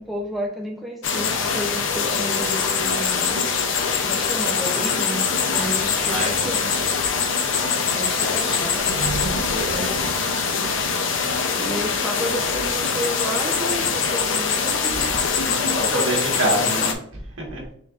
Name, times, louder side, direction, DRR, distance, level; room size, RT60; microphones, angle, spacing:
voice 1, 0.0-3.4 4.0-6.7 7.9-10.2 11.6-16.8, equal, ahead, -1 dB, 0.5 m, -32 dB
sound 1, 1.0-16.9, left 5 dB, 75° left, 0.6 m, -23 dB
voice 2, 5.5-6.9 8.1-8.4 10.6-11.0 14.9-17.6, right 1 dB, 80° right, -1 dB, 1.4 m, -29 dB
sound 2, 8.9-11.5, right 4 dB, 60° right, 0.3 m, -33 dB
4.6 x 3.8 x 2.4 m, 0.63 s
head